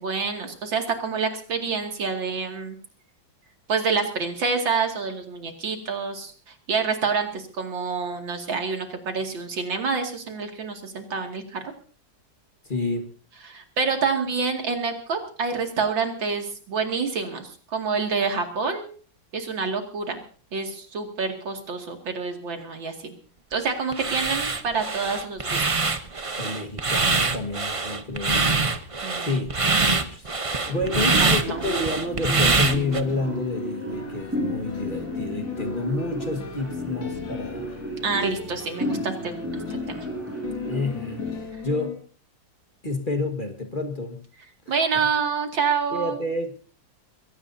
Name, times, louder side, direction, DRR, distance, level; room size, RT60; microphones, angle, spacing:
voice 1, 0.0-2.8 3.7-11.6 13.4-18.8 19.3-20.2 20.5-23.1 23.5-26.0 29.0-29.3 31.2-31.6 38.0-39.4 39.9-40.1 44.7-46.2, right 5 dB, 90° right, 4 dB, 3.1 m, -27 dB
voice 2, 12.6-13.1 26.4-28.8 29.2-37.7 40.6-42.0 42.8-44.2 44.7-45.1 45.9-46.6, left 2 dB, 25° left, 5 dB, 1.7 m, -30 dB
sound 1, 23.9-33.0, right 4 dB, 30° right, 0.5 m, -24 dB
sound 2, 30.7-42.0, left 2 dB, 80° left, 2.7 m, -37 dB
sound 3, 30.7-41.3, left 1 dB, 5° right, 6.4 m, -34 dB
23.0 x 17.0 x 2.8 m, 0.42 s
omnidirectional pair, 2.0 m